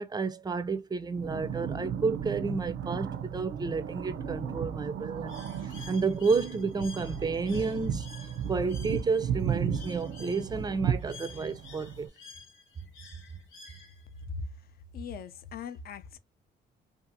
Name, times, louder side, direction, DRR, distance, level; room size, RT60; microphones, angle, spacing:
voice 1, 0.0-5.4 5.9-8.1 8.5-12.1, right 4 dB, 20° right, 0.4 m, -31 dB
sound 1, 1.1-12.1, right 8 dB, 80° right, 0.5 m, -35 dB
Bird, 5.3-14.2, left 5 dB, 85° left, 1.0 m, -51 dB
voice 2, 14.2-14.7 14.9-16.2, left 4 dB, 50° left, 0.5 m, -39 dB
2.7 x 2.5 x 2.6 m
cardioid pair, 90°, 20 cm